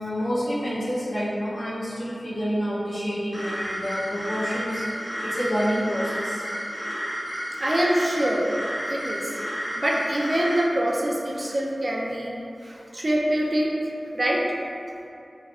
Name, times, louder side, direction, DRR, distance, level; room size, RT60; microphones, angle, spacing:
voice 1, 0.0-4.8 5.2-6.5, equal, 55° left, -9 dB, 0.8 m, -28 dB
sound 1, 3.3-10.7, equal, 15° right, 0.8 m, -31 dB
voice 2, 7.6-8.4 8.9-9.2 9.8-12.3 12.6-13.7 14.1-14.4, right 1 dB, 45° right, -3 dB, 0.4 m, -24 dB
3.1 x 2.5 x 2.4 m, 2.7 s
wide cardioid pair, 55°, 0 cm